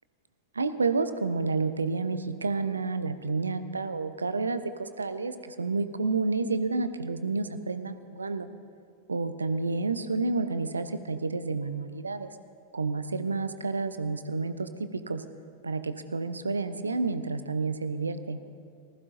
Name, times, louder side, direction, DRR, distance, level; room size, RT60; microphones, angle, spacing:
voice 1, 0.5-8.5 9.1-12.3 12.7-15.2 15.6-18.4, right 3 dB, 75° right, 11 dB, 0.6 m, -30 dB
19.0 x 14.5 x 2.6 m, 2.2 s
figure-of-eight pair, 90°, 0 cm